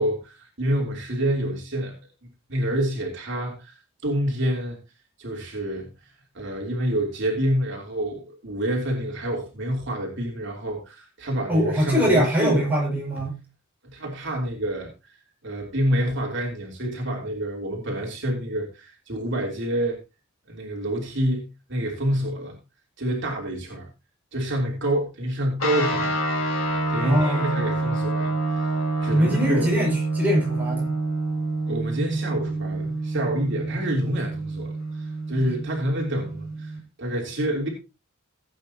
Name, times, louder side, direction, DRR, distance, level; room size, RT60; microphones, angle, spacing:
voice 1, 0.0-1.9 2.5-4.8 5.2-5.9 6.3-12.6 13.8-15.1 15.4-20.0 20.5-22.6 23.0-23.9 24.3-26.1 26.9-28.7 29.0-29.7 31.7-37.7, right 1 dB, 60° right, 3.2 m, -27 dB
voice 2, 11.5-13.3 27.0-27.6 29.1-31.0, equal, 10° right, 6.1 m, -23 dB
sound 1, 25.6-36.8, right 2 dB, 80° left, 3.9 m, -27 dB
17.5 x 8.8 x 2.9 m
head